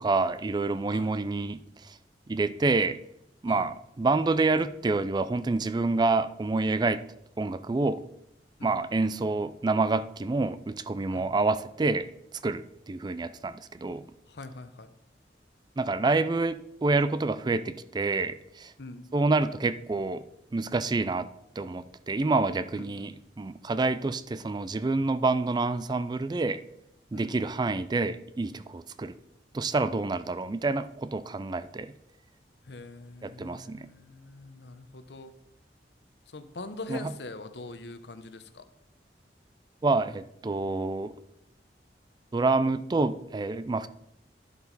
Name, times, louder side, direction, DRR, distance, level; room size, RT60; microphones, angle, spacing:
voice 1, 0.0-1.9 2.3-3.0 3.4-7.0 7.4-8.0 8.6-12.1 12.4-14.0 15.8-18.7 19.1-20.2 20.5-21.3 21.6-26.6 27.1-29.2 29.5-31.9 33.2-33.9 36.9-37.1 39.8-41.1 42.3-43.9, right 3 dB, 25° right, 14 dB, 0.3 m, -27 dB
voice 2, 14.3-14.9 18.8-19.1 22.8-23.1 27.1-27.3 32.7-35.3 36.3-38.6, left 3 dB, 75° left, 10 dB, 0.8 m, -43 dB
11.0 x 7.0 x 4.0 m, 0.80 s
head